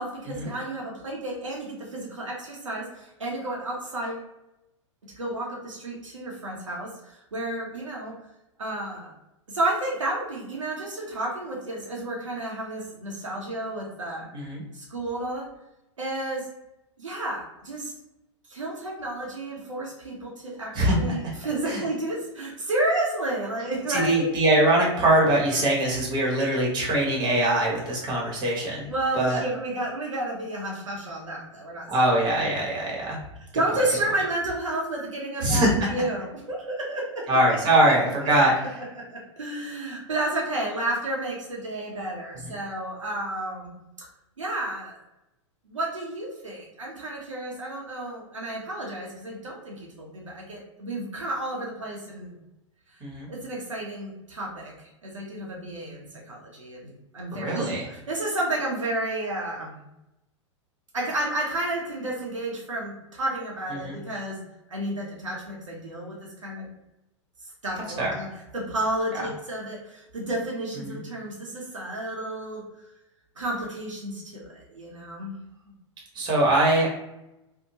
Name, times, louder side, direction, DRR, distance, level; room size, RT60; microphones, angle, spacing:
voice 1, 0.0-4.3 5.2-8.1 8.6-9.1 9.5-14.3 14.7-15.4 16.0-16.4 17.0-17.9 18.5-24.3 28.9-31.9 33.5-37.7 39.1-43.7 44.0-44.1 44.4-45.0 45.6-52.3 53.3-54.7 55.0-59.8 60.9-64.4 64.7-66.7 67.6-68.3 68.5-72.6 73.4-75.4, right 1 dB, 80° right, -3 dB, 0.7 m, -31 dB
voice 2, 20.7-21.2 21.6-21.8 23.9-28.9 29.1-29.4 31.9-33.2 33.7-33.8 35.4-35.9 37.3-38.5 53.0-53.3 57.3-57.8 63.7-64.0 68.0-68.1 70.8-71.0 76.1-76.9, right 1 dB, 30° right, -3 dB, 1.1 m, -22 dB
2.7 x 2.1 x 2.8 m, 0.92 s
figure-of-eight pair, 95°, 16 cm